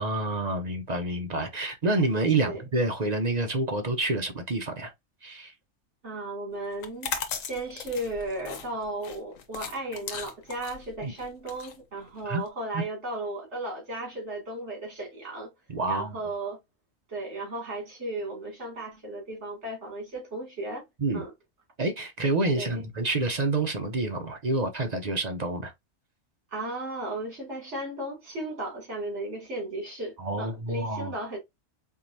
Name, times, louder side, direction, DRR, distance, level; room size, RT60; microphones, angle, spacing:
voice 1, 0.0-4.9 5.2-5.5 11.0-11.1 12.2-12.4 12.7-12.8 15.7-16.2 21.0-21.2 21.8-25.7 30.2-31.1, right 2 dB, 45° right, 0.6 m, -28 dB
voice 2, 6.0-15.5 15.9-16.6 17.1-20.8 21.1-21.3 22.5-22.9 26.5-31.4, right 2 dB, 60° right, 2.5 m, -35 dB
sound 1, 6.7-12.5, left 6 dB, 90° left, 1.2 m, -37 dB
4.6 x 3.0 x 2.6 m
omnidirectional pair, 1.3 m